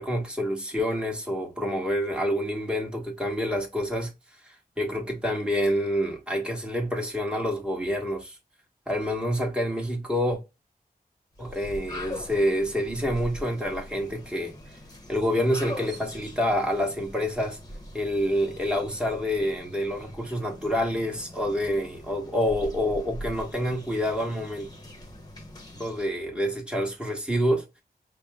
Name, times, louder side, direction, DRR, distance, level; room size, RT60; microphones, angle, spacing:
voice 1, 0.0-4.1 4.4-8.4 8.9-10.4 11.4-14.5 15.1-17.6 17.9-24.7 25.8-27.8, equal, 5° right, 1.4 m, -27 dB
sound 1, 11.3-26.2, left 1 dB, 25° left, 1.1 m, -42 dB
5.3 x 2.2 x 3.5 m
wide cardioid pair, 100°, 17 cm